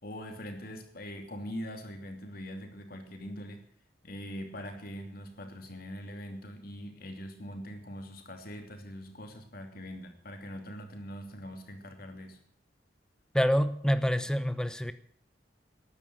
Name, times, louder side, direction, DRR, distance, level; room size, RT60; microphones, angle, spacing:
voice 1, 0.0-3.6 4.0-12.4, equal, 55° left, 5 dB, 3.0 m, -42 dB
voice 2, 13.3-14.9, equal, 5° left, 12 dB, 0.8 m, -27 dB
13.0 x 11.0 x 9.4 m, 0.65 s
head